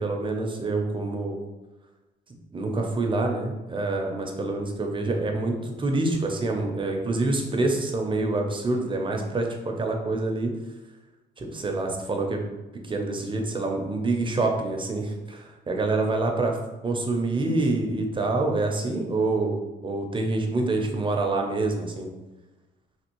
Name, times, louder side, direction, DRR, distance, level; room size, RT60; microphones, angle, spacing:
voice 1, 0.0-1.4 2.5-10.5 11.4-12.4 12.8-16.6 16.8-19.5 19.8-22.1, right 2 dB, 25° right, 2 dB, 0.6 m, -26 dB
3.4 x 2.4 x 3.0 m, 1.1 s
cardioid pair, 90°, 20 cm